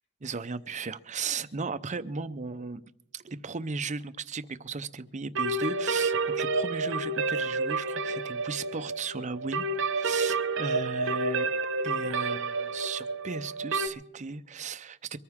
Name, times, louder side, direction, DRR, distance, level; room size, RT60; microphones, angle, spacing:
voice 1, 0.2-2.8 3.1-9.6 9.9-11.5 11.8-15.2, right 4 dB, 35° right, 13 dB, 0.6 m, -36 dB
sound 1, 5.3-13.9, right 3 dB, 65° right, 1.0 m, -29 dB
23.5 x 14.0 x 3.6 m, 0.75 s
head